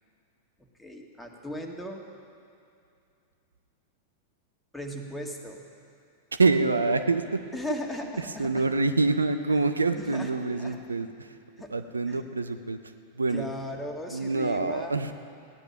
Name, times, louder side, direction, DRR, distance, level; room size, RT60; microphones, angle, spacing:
voice 1, 0.8-2.0 4.7-5.7 7.5-8.7 10.0-10.3 10.6-10.8 11.6-11.7 12.1-12.2 13.3-14.9, left 1 dB, 5° left, 1 dB, 1.8 m, -37 dB
voice 2, 6.3-7.4 8.2-11.4 11.7-12.8 13.1-13.5 14.1-15.1, right 3 dB, 90° right, 10 dB, 0.6 m, -26 dB
16.0 x 10.5 x 5.7 m, 2.5 s
hypercardioid pair, 95°, 0 cm